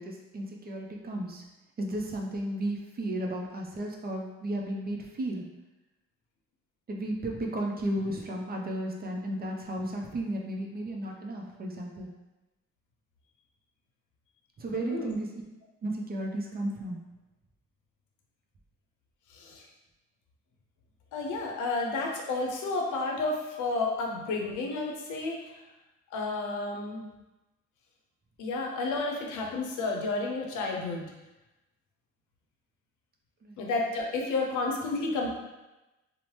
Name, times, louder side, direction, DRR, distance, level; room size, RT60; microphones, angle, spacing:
voice 1, 0.0-1.4 1.8-5.4 6.9-12.1 14.6-15.4 15.8-17.0 33.4-33.6, right 1 dB, 30° right, 1 dB, 0.4 m, -34 dB
voice 2, 14.7-15.2 19.3-19.6 21.1-25.4 26.1-27.1 28.4-31.1 33.6-35.3, left 3 dB, 80° left, 1 dB, 0.6 m, -31 dB
2.8 x 2.0 x 3.1 m, 1.0 s
cardioid pair, 90°, 30 cm